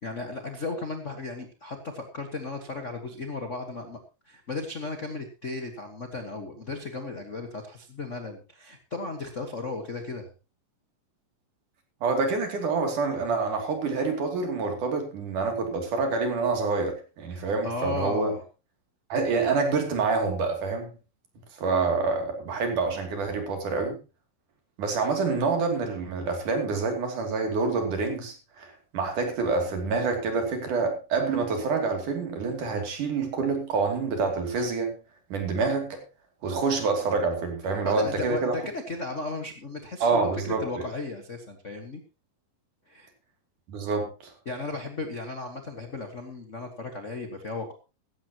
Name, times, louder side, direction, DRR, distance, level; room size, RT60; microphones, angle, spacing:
voice 1, 0.0-4.0 4.2-10.3 17.3-18.4 37.8-42.0 42.9-43.1 44.4-47.7, left 3 dB, 50° left, 0.8 m, -35 dB
voice 2, 12.0-18.4 19.1-20.9 21.6-24.0 24.8-35.0 35.3-36.0 36.4-38.6 40.0-40.8 43.7-44.3, right 4 dB, 65° right, 4.3 m, -27 dB
15.5 x 14.5 x 3.0 m
omnidirectional pair, 4.0 m